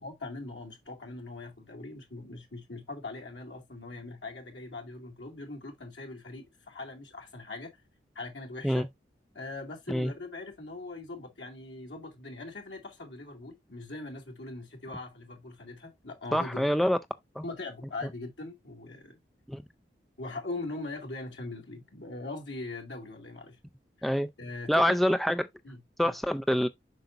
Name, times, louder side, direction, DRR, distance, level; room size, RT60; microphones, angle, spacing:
voice 1, 0.0-7.7 8.1-8.9 9.3-16.7 17.4-19.2 20.2-23.6 24.4-25.0 25.6-26.1, left 2 dB, 90° left, 2.4 m, -41 dB
voice 2, 16.3-17.0 17.4-17.5 19.5-19.6 24.0-24.3 24.7-25.5 26.0-26.7, equal, ahead, 0.3 m, -26 dB
7.9 x 5.7 x 2.5 m
head